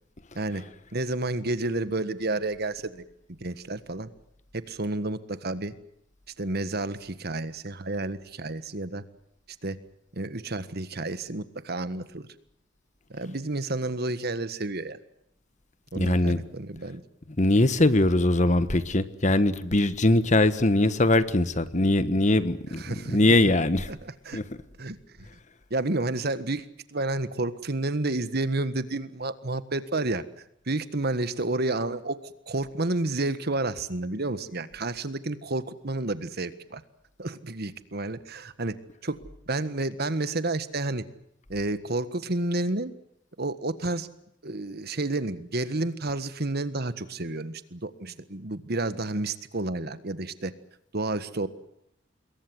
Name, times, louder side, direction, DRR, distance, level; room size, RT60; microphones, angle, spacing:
voice 1, 0.3-0.7 0.9-3.0 3.4-4.1 4.5-5.7 6.4-9.0 9.6-9.8 10.1-12.3 13.1-15.0 15.9-17.0 22.8-23.2 23.9-24.4 24.8-25.3 25.7-26.7 26.9-30.2 30.7-36.8 37.2-38.8 39.0-39.2 39.5-41.0 41.5-42.9 43.4-44.1 44.4-50.5 50.9-51.5, right 2 dB, 55° right, 13 dB, 1.6 m, -30 dB
voice 2, 15.9-16.4 17.4-23.9 24.3-24.5, left 2 dB, 40° left, 13 dB, 1.4 m, -22 dB
27.0 x 22.0 x 7.8 m, 0.76 s
head